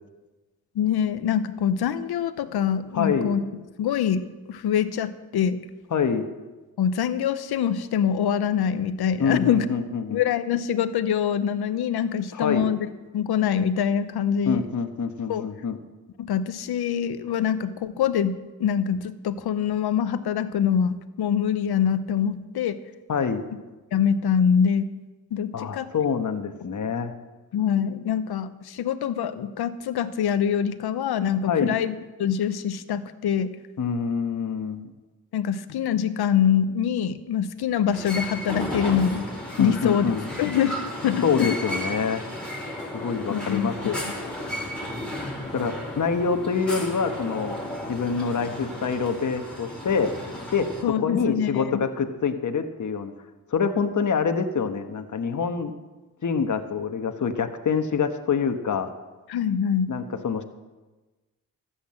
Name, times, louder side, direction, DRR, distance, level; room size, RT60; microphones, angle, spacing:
voice 1, 0.7-3.4 3.8-5.6 6.8-9.6 10.1-12.9 13.1-14.6 15.3-15.5 16.2-22.8 23.9-24.9 25.3-25.9 27.5-31.9 32.2-33.5 35.3-39.3 39.6-40.1 40.4-40.8 41.0-41.6 43.3-43.7 50.8-51.8 59.3-59.9, left 8 dB, 90° left, 13 dB, 0.8 m, -24 dB
voice 2, 2.9-3.3 5.9-6.3 9.2-10.2 12.3-12.7 14.4-15.8 23.1-23.4 25.5-27.1 31.4-31.7 33.8-34.9 39.6-40.2 41.2-42.2 42.9-44.0 45.5-47.6 47.9-50.1 50.5-53.1 53.5-55.7 56.2-58.9 59.9-60.4, left 5 dB, 55° left, 6 dB, 1.3 m, -26 dB
sound 1, 37.9-50.8, left 1 dB, 5° left, 4.6 m, -34 dB
13.5 x 8.5 x 7.5 m, 1.2 s
cardioid pair, 60°, 37 cm